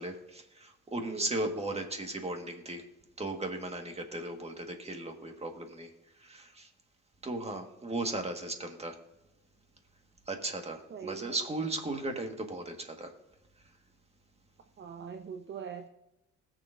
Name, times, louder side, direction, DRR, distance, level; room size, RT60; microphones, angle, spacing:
voice 1, 0.0-2.8 3.2-5.9 6.2-6.7 7.2-9.0 10.3-13.1, right 2 dB, 20° right, 4 dB, 1.8 m, -36 dB
voice 2, 1.1-1.4 10.9-11.4 14.8-15.9, right 7 dB, 40° right, 7 dB, 0.7 m, -42 dB
20.5 x 7.0 x 2.7 m, 0.96 s
cardioid pair, 90°, 30 cm